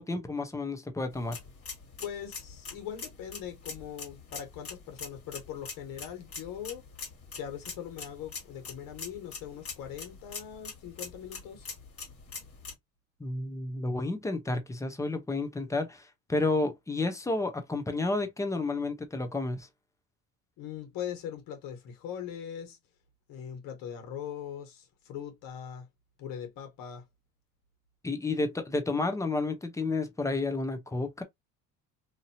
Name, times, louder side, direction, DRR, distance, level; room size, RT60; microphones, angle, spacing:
voice 1, 0.0-1.4 13.2-19.7 28.0-31.2, left 3 dB, 10° left, 0.7 m, -31 dB
sound 1, 1.1-12.7, left 4 dB, 45° left, 1.8 m, -44 dB
voice 2, 2.0-6.9 7.3-11.7 20.6-22.8 23.3-25.9 26.2-27.0, left 9 dB, 75° left, 1.3 m, -41 dB
2.9 x 2.7 x 2.7 m
cardioid pair, 105°, 33 cm